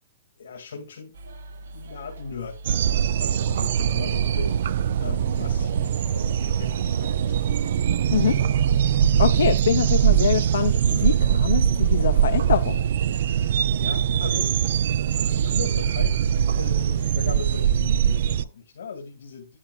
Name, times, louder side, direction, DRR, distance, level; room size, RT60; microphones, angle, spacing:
voice 1, 0.4-1.2 1.7-7.6 13.4-14.5 15.3-19.6, left 5 dB, 90° left, 2.1 m, -39 dB
sound 1, 1.1-17.7, right 2 dB, 85° right, 1.6 m, -42 dB
sound 2, 2.6-18.4, right 9 dB, 50° right, 0.4 m, -22 dB
voice 2, 8.1-12.9, left 8 dB, 70° left, 0.7 m, -25 dB
10.0 x 9.9 x 2.3 m
hypercardioid pair, 180°, 0 cm